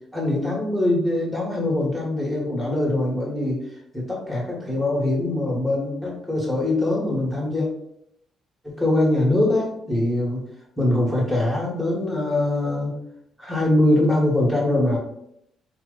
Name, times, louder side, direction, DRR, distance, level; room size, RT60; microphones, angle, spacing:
voice 1, 0.1-3.6 3.9-7.7 8.6-10.4 10.8-13.0 13.4-15.0, left 1 dB, 5° left, -4 dB, 1.3 m, -22 dB
2.8 x 2.2 x 3.8 m, 0.75 s
cardioid pair, 90°, 0 cm